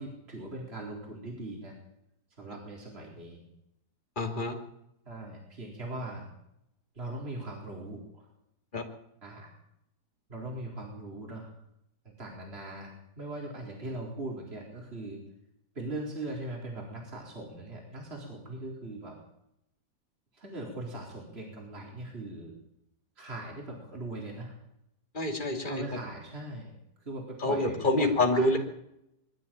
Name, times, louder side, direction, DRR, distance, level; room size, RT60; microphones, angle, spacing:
voice 1, 0.0-1.8 2.4-3.4 5.1-6.3 6.9-8.3 9.2-9.5 10.3-11.5 12.0-15.2 15.7-19.2 20.3-22.5 23.2-24.6 25.7-26.7 27.0-28.6, right 2 dB, 35° right, -1 dB, 4.3 m, -40 dB
voice 2, 4.2-4.5 8.7-8.8 25.1-25.8 27.4-28.6, left 1 dB, 25° left, 3 dB, 3.1 m, -26 dB
23.0 x 13.0 x 8.9 m, 0.80 s
omnidirectional pair, 1.9 m